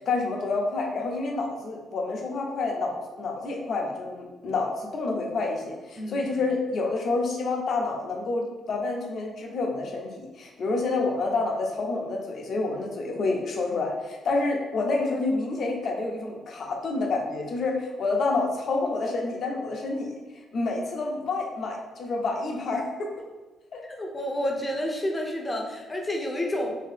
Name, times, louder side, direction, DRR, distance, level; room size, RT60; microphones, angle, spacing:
voice 1, 0.0-20.1 20.5-23.1 23.7-23.8, left 3 dB, 60° left, 0 dB, 0.6 m, -28 dB
voice 2, 6.0-6.3 23.9-26.8, left 1 dB, 20° left, 1 dB, 0.6 m, -30 dB
2.8 x 2.8 x 3.3 m, 1.2 s
cardioid pair, 90°, 0 cm